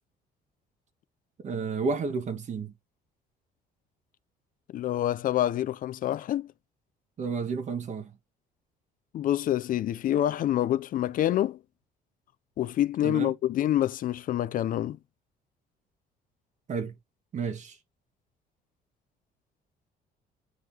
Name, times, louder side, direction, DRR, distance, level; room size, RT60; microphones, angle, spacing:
voice 1, 1.4-2.7 7.2-8.1 13.0-13.4 16.7-17.0 17.3-17.8, right 5 dB, 45° right, 1.8 m, -31 dB
voice 2, 4.7-6.5 9.1-11.6 12.6-15.0, left 12 dB, 55° left, 0.5 m, -27 dB
9.4 x 3.7 x 2.9 m
cardioid pair, 110°, 17 cm